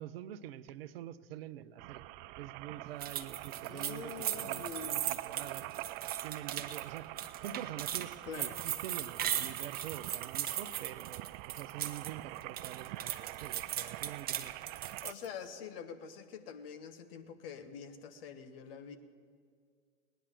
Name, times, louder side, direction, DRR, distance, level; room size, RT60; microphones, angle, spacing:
voice 1, 0.0-2.1 2.4-7.1 7.4-14.5, right 11 dB, 70° right, 14 dB, 0.8 m, -46 dB
sound 1, 1.8-15.1, right 18 dB, 45° right, 0.4 m, -45 dB
sound 2, 3.0-12.1 12.4-15.3, right 10 dB, 30° right, 0.9 m, -38 dB
voice 2, 3.7-5.1 8.2-8.6 15.0-19.0, left 7 dB, 65° left, 9 dB, 1.5 m, -45 dB
17.5 x 10.0 x 7.6 m, 2.1 s
hypercardioid pair, 95°, 31 cm